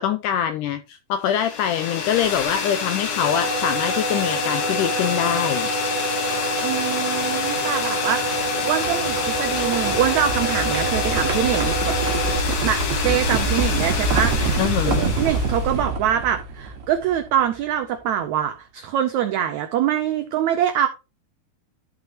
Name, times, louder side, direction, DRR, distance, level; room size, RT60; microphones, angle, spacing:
voice 1, 0.0-5.7 14.6-15.1, left 10 dB, 90° left, 1.8 m, -24 dB
sound 1, 1.3-15.8, left 6 dB, 60° left, 2.9 m, -27 dB
sound 2, 3.2-12.4, right 3 dB, 20° left, 2.3 m, -28 dB
sound 3, 5.4-17.5, right 3 dB, 55° right, 2.8 m, -27 dB
voice 2, 6.6-12.0 12.6-20.9, right 10 dB, 85° right, 1.6 m, -24 dB
12.5 x 5.8 x 3.0 m
omnidirectional pair, 4.3 m